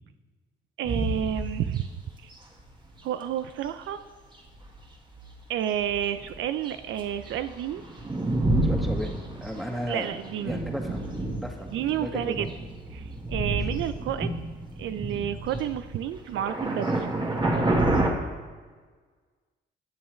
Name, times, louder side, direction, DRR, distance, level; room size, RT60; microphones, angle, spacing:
sound 1, 0.8-1.8 2.6-2.7 3.6-3.7 4.5-5.4 5.8-18.1, right 2 dB, 25° right, 1.7 m, -29 dB
voice 1, 0.8-1.9 2.2-2.3 3.0-4.0 5.5-7.8 9.8-10.6 11.7-12.5 12.9-14.3 14.8-17.1, right 10 dB, 75° right, 11 dB, 0.5 m, -30 dB
voice 2, 8.6-11.0 11.4-11.7 12.0-12.5 13.5-13.7, equal, ahead, 1 dB, 1.7 m, -35 dB
18.5 x 7.2 x 3.2 m, 1.5 s
cardioid pair, 90°, 20 cm